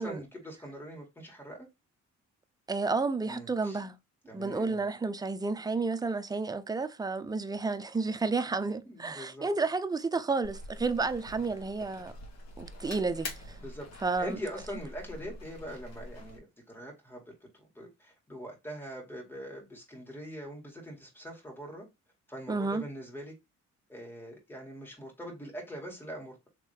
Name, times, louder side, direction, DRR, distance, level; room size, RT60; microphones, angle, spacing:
voice 1, 0.0-1.7 3.2-3.8 4.3-4.8 8.9-9.5 13.6-13.9 14.2-21.9 22.3-23.3 23.9-26.5, equal, 5° left, 2.2 m, -43 dB
voice 2, 2.7-4.0 4.3-12.1 12.6-13.6 14.0-14.4 22.5-22.9, right 3 dB, 15° right, 0.4 m, -31 dB
sound 1, 10.4-16.4, left 2 dB, 60° left, 1.7 m, -45 dB
3.6 x 3.1 x 3.3 m
cardioid pair, 90°, 30 cm